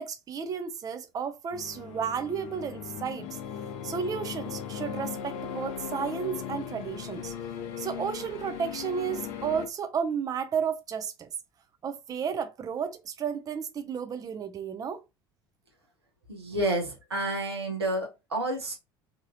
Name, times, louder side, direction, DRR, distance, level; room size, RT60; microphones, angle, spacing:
voice 1, 0.0-3.4 3.8-7.3 7.8-11.3 11.8-15.0, right 7 dB, 25° right, 0.4 m, -33 dB
sound 1, 1.5-9.7, left 8 dB, 55° left, 0.5 m, -38 dB
voice 2, 16.3-18.7, right 1 dB, 85° right, 0.9 m, -30 dB
2.8 x 2.6 x 2.7 m
figure-of-eight pair, 65°, 13 cm